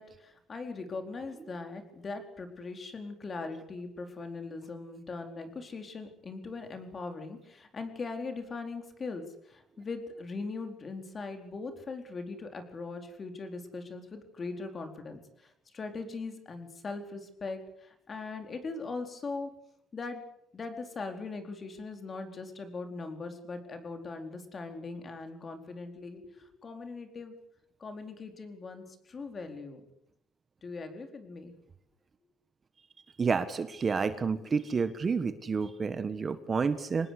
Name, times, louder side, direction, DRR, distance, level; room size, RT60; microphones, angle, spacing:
voice 1, 0.0-19.5 19.9-20.2 20.5-27.3 27.8-29.8 30.6-31.5, left 3 dB, 30° left, 6 dB, 4.2 m, -40 dB
voice 2, 33.2-37.1, right 5 dB, 30° right, 11 dB, 1.5 m, -30 dB
25.5 x 19.5 x 8.4 m, 0.77 s
cardioid pair, 135°, 0 cm